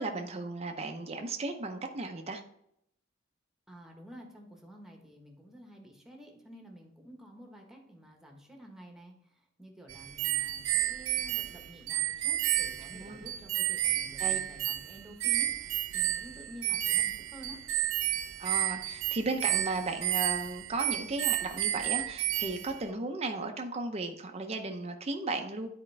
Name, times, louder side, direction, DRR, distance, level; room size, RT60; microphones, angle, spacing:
voice 1, 0.0-2.4 12.9-13.3 14.2-14.4 18.4-25.7, right 3 dB, 30° right, 4 dB, 0.6 m, -35 dB
voice 2, 3.7-9.1 9.6-15.5 15.9-17.6, equal, ahead, 1 dB, 1.2 m, -50 dB
sound 1, 9.9-22.8, right 14 dB, 75° right, 0.4 m, -31 dB
9.8 x 4.4 x 3.3 m, 0.74 s
head